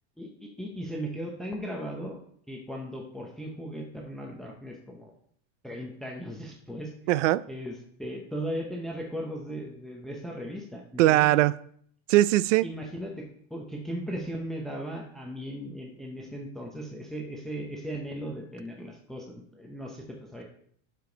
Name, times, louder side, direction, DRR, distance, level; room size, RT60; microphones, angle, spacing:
voice 1, 0.2-2.2 2.5-5.1 5.6-6.9 7.5-11.3 12.6-20.4, equal, ahead, 0.8 m, -37 dB
voice 2, 7.1-7.5 11.0-11.6 12.1-12.7, right 16 dB, 80° right, 0.5 m, -20 dB
12.0 x 5.3 x 3.9 m
supercardioid pair, 165°, 36 cm